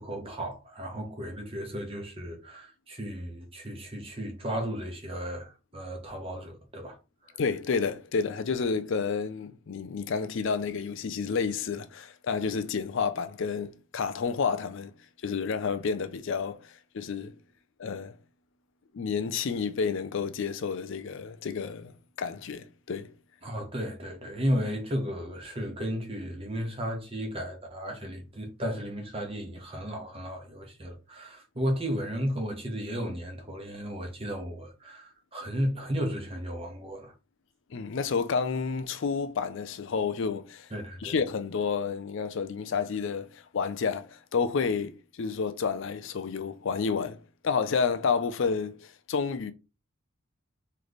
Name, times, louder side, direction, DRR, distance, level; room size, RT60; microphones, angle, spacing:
voice 1, 0.0-7.0 7.2-7.4 23.4-37.1 40.7-41.2, equal, 25° right, 1.0 m, -34 dB
voice 2, 7.4-14.9 15.2-17.4 17.8-18.2 18.9-21.9 22.2-23.1 37.7-40.7 41.0-49.5, left 5 dB, 55° left, 0.4 m, -30 dB
3.2 x 3.2 x 4.0 m
head